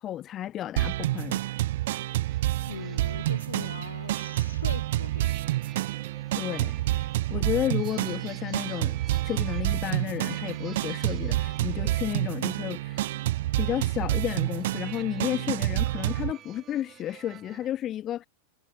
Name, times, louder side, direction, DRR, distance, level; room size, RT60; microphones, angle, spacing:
voice 1, 0.0-1.4 6.4-13.1 13.6-18.3, left 12 dB, 30° left, 0.4 m, -32 dB
sound 1, 0.8-16.3, right 16 dB, 55° right, 0.5 m, -28 dB
sound 2, 1.2-17.7, right 11 dB, 30° right, 3.0 m, -51 dB
voice 2, 2.7-5.4, left 7 dB, 70° left, 1.5 m, -41 dB
figure-of-eight pair, 90°, 0 cm